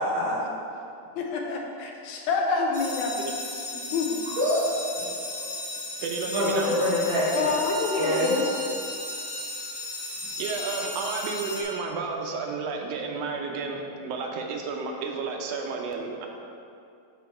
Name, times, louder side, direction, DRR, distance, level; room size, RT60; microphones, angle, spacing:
voice 1, 1.2-3.1 3.7-4.2 7.3-8.5, left 4 dB, 80° left, 0 dB, 2.0 m, -27 dB
sound 1, 2.7-11.6, left 2 dB, 55° left, 0.9 m, -36 dB
voice 2, 4.4-5.5 6.3-7.5 7.9-8.3, left 1 dB, 50° right, -11 dB, 1.9 m, -26 dB
voice 3, 6.0-6.7 10.4-16.3, right 4 dB, 80° right, 1 dB, 1.4 m, -32 dB
Bowed string instrument, 6.5-11.9, right 3 dB, 65° right, 1.3 m, -41 dB
6.2 x 5.5 x 4.3 m, 2.5 s
omnidirectional pair, 3.5 m